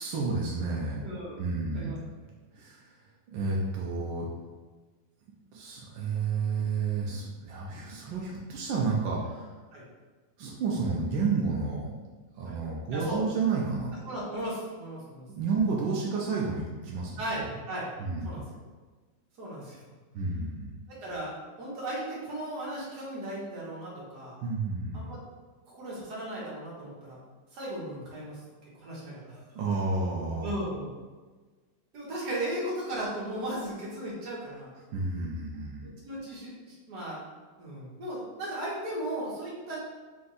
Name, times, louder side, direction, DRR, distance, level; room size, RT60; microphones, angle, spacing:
voice 1, 0.0-1.0 1.4-1.9 2.5-2.9 3.3-4.3 5.5-9.5 10.4-11.9 12.4-13.9 15.3-17.5 18.0-18.4 20.1-20.7 24.4-25.1 29.5-30.5 34.9-35.9, right 4 dB, 90° right, -3 dB, 1.4 m, -31 dB
voice 2, 1.0-1.4 1.7-2.0 9.7-9.8 12.5-12.6 12.9-13.2 14.1-15.3 17.2-17.9 18.2-18.4 19.4-19.8 20.9-24.4 24.9-25.2 25.7-27.2 27.5-28.4 28.8-29.6 30.4-30.9 31.9-34.7 35.8-37.2 37.6-39.8, right 1 dB, 60° right, -6 dB, 1.9 m, -36 dB
4.6 x 2.6 x 3.9 m, 1.3 s
omnidirectional pair, 2.0 m